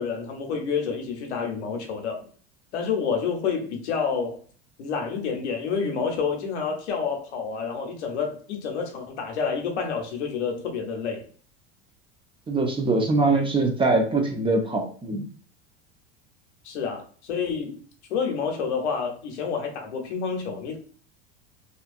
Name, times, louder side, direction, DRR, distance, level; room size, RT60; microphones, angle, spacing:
voice 1, 0.0-2.3 2.7-4.4 4.8-11.2 16.6-17.8 18.1-20.8, left 6 dB, 90° left, 0.9 m, -28 dB
voice 2, 12.5-15.2, right 3 dB, 15° right, 0.5 m, -23 dB
2.7 x 2.3 x 2.5 m
supercardioid pair, 110°, 33 cm